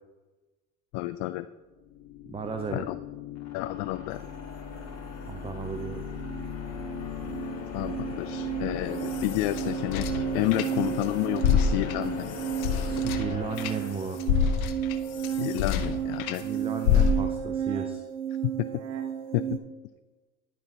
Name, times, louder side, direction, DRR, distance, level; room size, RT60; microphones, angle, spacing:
voice 1, 0.9-1.5 2.7-3.0 3.5-4.2 7.7-12.4 15.3-16.4 18.4-18.7 19.3-19.6, left 16 dB, 55° left, 12 dB, 0.5 m, -30 dB
sound 1, 1.7-14.7, left 7 dB, 35° left, 1.9 m, -39 dB
voice 2, 2.3-2.9 5.3-6.1 12.8-14.2 16.4-18.1, right 5 dB, 15° right, 7 dB, 0.5 m, -35 dB
sound 2, 4.8-4.9 5.2-19.6, right 9 dB, 65° right, 1.0 m, -33 dB
sound 3, 8.7-11.1 11.4-16.4 16.8-17.5, left 7 dB, 75° left, 0.8 m, -28 dB
11.5 x 4.3 x 4.2 m, 1.2 s
hypercardioid pair, 65°, 43 cm